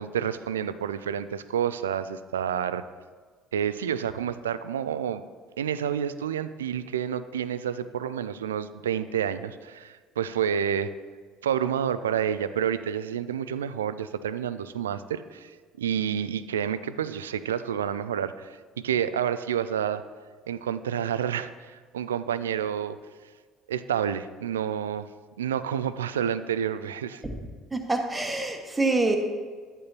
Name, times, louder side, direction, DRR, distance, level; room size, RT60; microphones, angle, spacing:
voice 1, 0.0-2.8 3.5-5.2 5.6-10.9 11.4-20.0 20.5-23.0 23.7-25.1 25.4-27.2, right 9 dB, 80° right, 14 dB, 0.3 m, -29 dB
voice 2, 27.7-29.2, right 2 dB, 15° right, 4 dB, 1.4 m, -26 dB
12.0 x 8.8 x 2.8 m, 1.6 s
figure-of-eight pair, 55°, 0 cm